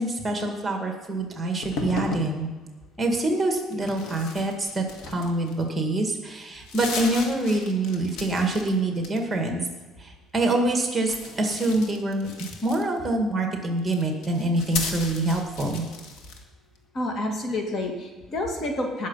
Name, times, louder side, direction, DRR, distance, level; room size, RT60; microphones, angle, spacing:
voice 1, 0.0-2.5 3.0-9.6 10.0-12.3 12.6-15.8, right 2 dB, 15° right, 3 dB, 2.1 m, -25 dB
sound 1, 1.6-2.3 3.7-5.7 6.1-6.2 6.5-8.7 9.0-9.5 11.0-13.1 13.8-16.4, left 4 dB, 80° left, 1.8 m, -35 dB
voice 2, 16.9-19.1, left 1 dB, 40° left, 2 dB, 2.3 m, -29 dB
19.0 x 6.6 x 5.7 m, 1.3 s
cardioid pair, 130°, 0 cm